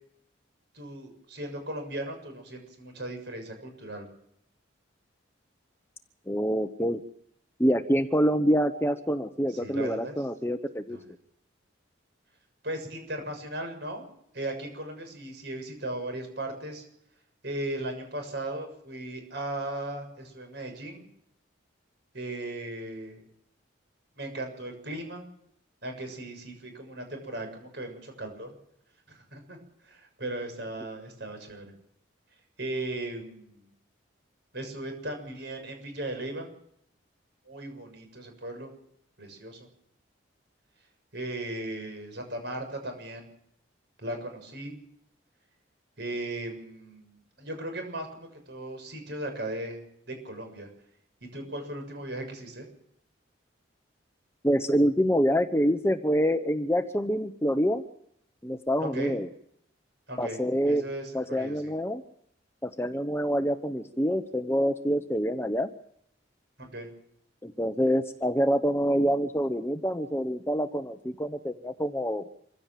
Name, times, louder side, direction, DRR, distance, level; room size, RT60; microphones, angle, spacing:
voice 1, 0.7-4.1 9.5-10.1 10.9-11.1 12.6-14.1 14.3-16.8 17.4-21.1 22.1-23.2 24.2-25.3 25.8-28.5 29.1-29.6 29.8-31.7 32.6-33.7 34.5-36.5 37.5-38.7 39.2-39.7 41.1-43.3 44.0-44.8 46.0-49.8 50.1-50.7 51.3-52.7 58.9-59.2 60.1-60.4 60.7-61.7 66.6-66.9, right 1 dB, 60° right, 5 dB, 6.9 m, -37 dB
voice 2, 6.3-7.0 7.6-11.0 54.4-57.8 58.4-59.3 60.2-60.8 61.1-62.0 62.6-65.7 67.4-72.2, equal, 10° left, 9 dB, 0.9 m, -26 dB
25.5 x 16.0 x 7.5 m, 0.73 s
head